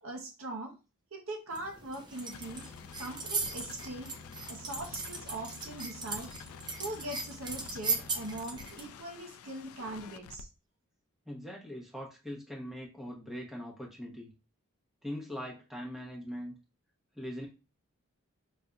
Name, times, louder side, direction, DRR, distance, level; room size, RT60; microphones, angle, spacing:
voice 1, 0.0-0.7 1.1-2.7 3.0-4.1 4.5-6.3 6.8-10.5, right 1 dB, 65° right, 3 dB, 0.8 m, -41 dB
sound 1, 1.5-8.9, right 4 dB, 20° right, 0.4 m, -38 dB
sound 2, 2.1-10.4, left 6 dB, 75° left, 0.3 m, -49 dB
voice 2, 11.3-14.3 15.0-16.5 17.1-17.5, equal, ahead, -3 dB, 0.9 m, -41 dB
5.1 x 2.6 x 2.3 m, 0.31 s
head